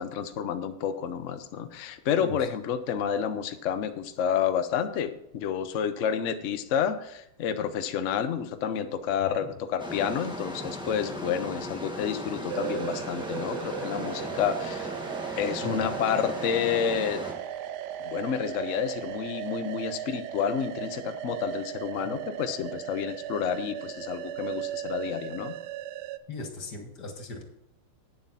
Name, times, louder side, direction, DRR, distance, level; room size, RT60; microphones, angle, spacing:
voice 1, 0.0-14.9 15.4-17.2 18.0-25.5, left 8 dB, 85° left, 9 dB, 0.6 m, -30 dB
voice 2, 9.2-9.5 15.6-15.9 22.0-22.2 26.3-27.4, left 2 dB, 55° left, 3 dB, 2.2 m, -38 dB
sound 1, 9.8-17.3, equal, 5° right, 1.2 m, -37 dB
sound 2, 12.5-26.2, right 11 dB, 75° right, 1.0 m, -37 dB
9.4 x 7.3 x 5.6 m, 0.79 s
omnidirectional pair, 2.3 m